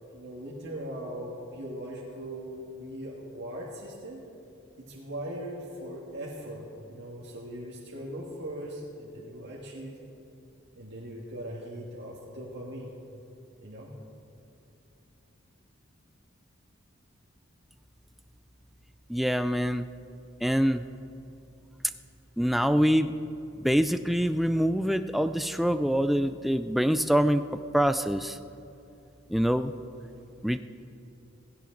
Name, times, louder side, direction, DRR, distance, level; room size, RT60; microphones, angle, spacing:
voice 1, 0.1-4.2 4.8-10.0 10.7-12.9 13.6-13.9, right 1 dB, 60° right, -4 dB, 1.8 m, -40 dB
voice 2, 19.1-19.9 20.4-20.8 22.4-23.1 23.6-27.4 27.7-28.4 29.3-29.7 30.4-30.6, equal, ahead, 10 dB, 0.3 m, -25 dB
16.5 x 16.5 x 3.9 m, 2.8 s
head